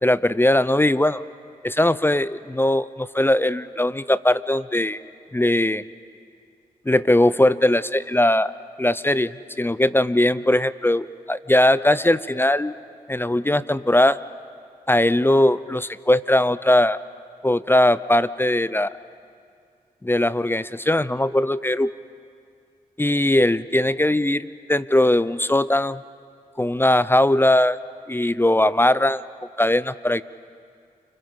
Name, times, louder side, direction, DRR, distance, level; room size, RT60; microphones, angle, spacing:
voice 1, 0.0-1.2 1.6-5.0 5.3-5.8 6.9-8.5 8.8-12.7 13.1-14.2 14.9-17.0 17.4-18.9 20.0-21.9 23.0-26.0 26.6-27.8 28.1-29.2 29.6-30.2, left 1 dB, 15° left, 16 dB, 0.7 m, -20 dB
29.5 x 24.5 x 5.5 m, 2.2 s
supercardioid pair, 40°, 16 cm